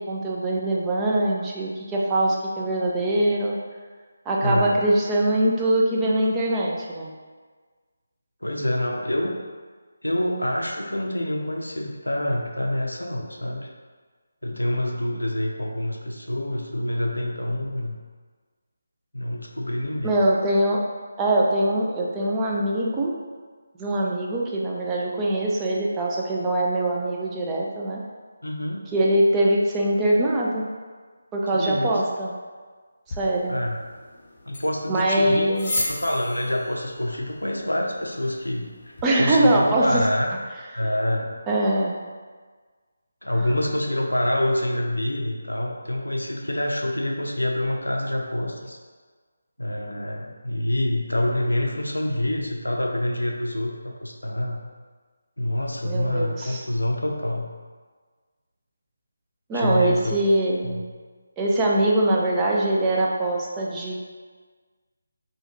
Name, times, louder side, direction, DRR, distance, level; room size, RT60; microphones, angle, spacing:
voice 1, 0.1-3.6 4.3-7.1 20.0-20.8 21.2-23.1 23.8-28.0 28.9-30.7 31.3-32.3 33.2-33.6 34.9-35.7 39.0-40.0 41.5-42.0 43.4-43.5 55.8-56.6 59.5-60.8 61.4-63.9, right 1 dB, 15° right, -3 dB, 0.3 m, -22 dB
voice 2, 4.4-4.7 8.4-9.4 10.0-13.7 14.4-18.0 19.1-20.3 28.4-28.9 31.5-31.9 33.5-33.8 34.4-35.5 35.9-40.3 40.7-41.3 43.2-48.8 49.6-54.6 55.4-57.5 59.5-60.2 60.6-60.9, left 1 dB, 85° left, 1 dB, 0.5 m, -26 dB
sound 1, 33.1-39.1, left 2 dB, 35° left, 0.7 m, -36 dB
3.4 x 2.2 x 2.9 m, 1.5 s
figure-of-eight pair, 155°, 0 cm